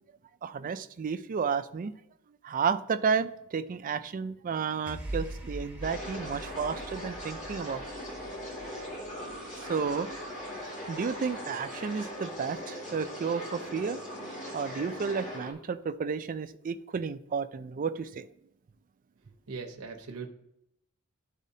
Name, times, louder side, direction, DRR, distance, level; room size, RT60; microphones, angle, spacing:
voice 1, 0.4-1.9 2.4-7.8 9.6-10.1 10.9-14.0 14.5-18.3, right 6 dB, 40° right, 10 dB, 0.4 m, -32 dB
sound 1, 4.9-11.3, right 1 dB, 5° right, 0.9 m, -43 dB
sound 2, 5.8-15.5, equal, 35° left, 2.2 m, -40 dB
voice 2, 19.5-20.3, right 4 dB, 90° right, 3 dB, 0.9 m, -39 dB
12.0 x 4.2 x 2.7 m, 0.77 s
head